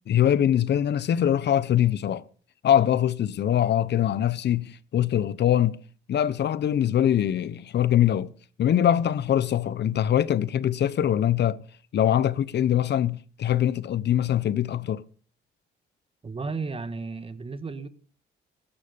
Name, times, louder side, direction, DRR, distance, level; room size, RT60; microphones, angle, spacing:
voice 1, 0.1-2.2 2.6-5.8 6.1-8.3 8.6-11.6 11.9-15.0, left 10 dB, 60° left, 0.9 m, -23 dB
voice 2, 16.2-17.9, right 4 dB, 30° right, 1.6 m, -33 dB
15.0 x 12.5 x 5.2 m
cardioid pair, 90°, 20 cm